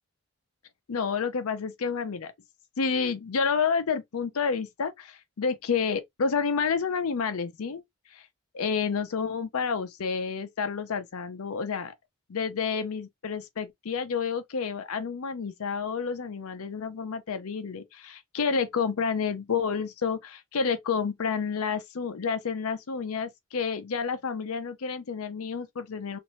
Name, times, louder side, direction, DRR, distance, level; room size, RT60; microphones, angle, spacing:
voice 1, 0.9-2.3 2.8-7.8 8.1-8.3 8.5-11.9 12.3-26.2, left 5 dB, 85° left, 0.5 m, -29 dB
2.6 x 2.6 x 3.0 m
head